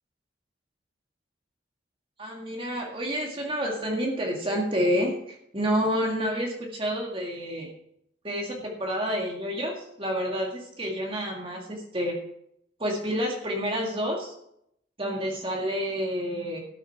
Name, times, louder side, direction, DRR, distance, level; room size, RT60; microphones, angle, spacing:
voice 1, 2.2-7.7 8.2-12.2 12.8-14.3 15.0-16.6, equal, 30° right, 0 dB, 1.9 m, -29 dB
12.5 x 6.5 x 5.8 m, 0.75 s
head